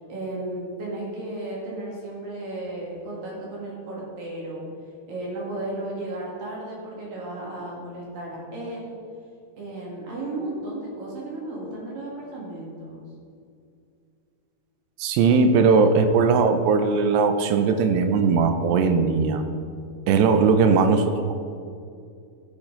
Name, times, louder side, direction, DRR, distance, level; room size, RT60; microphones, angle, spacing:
voice 1, 0.1-4.7 5.1-9.0 9.6-13.0, right 2 dB, 60° right, -5 dB, 3.5 m, -34 dB
voice 2, 15.0-19.4 20.1-21.3, right 5 dB, 85° right, 7 dB, 2.8 m, -19 dB
15.5 x 7.3 x 3.9 m, 2.4 s
omnidirectional pair, 5.0 m